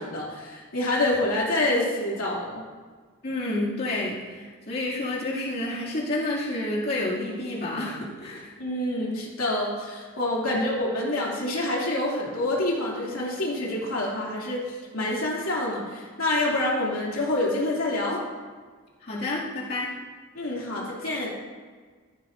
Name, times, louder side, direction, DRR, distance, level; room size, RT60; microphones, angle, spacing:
voice 1, 0.0-2.6 8.6-18.2 20.3-21.3, left 1 dB, 90° left, -4 dB, 2.7 m, -27 dB
voice 2, 3.2-8.5 10.5-10.6 19.0-19.9, left 2 dB, 45° left, -7 dB, 2.5 m, -29 dB
15.0 x 12.5 x 2.6 m, 1.5 s
head